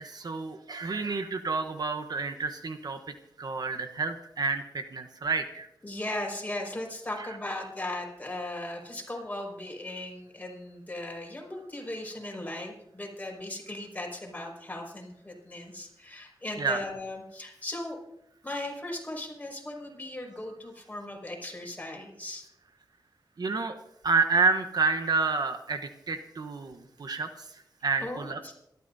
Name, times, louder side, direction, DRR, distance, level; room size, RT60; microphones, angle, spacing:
voice 1, 0.0-3.0 3.4-5.7 7.2-7.3 16.6-16.8 23.4-23.8 24.0-25.8 26.1-27.3 27.8-28.5, right 4 dB, 60° right, 7 dB, 1.0 m, -29 dB
voice 2, 5.8-18.0 18.4-22.4 28.0-28.5, left 1 dB, 20° left, -1 dB, 5.4 m, -37 dB
26.5 x 13.5 x 2.7 m, 0.82 s
wide cardioid pair, 105°, 8 cm